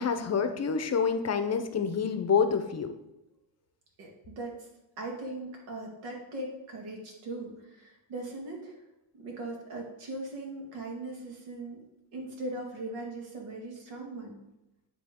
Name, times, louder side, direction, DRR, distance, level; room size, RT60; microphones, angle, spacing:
voice 1, 0.0-2.9, left 6 dB, 35° left, 8 dB, 0.6 m, -27 dB
voice 2, 4.0-4.7 5.0-8.8 9.1-11.8 12.1-14.4, right 2 dB, 90° right, 0 dB, 2.0 m, -39 dB
9.9 x 3.5 x 3.6 m, 0.93 s
cardioid pair, 100°, 49 cm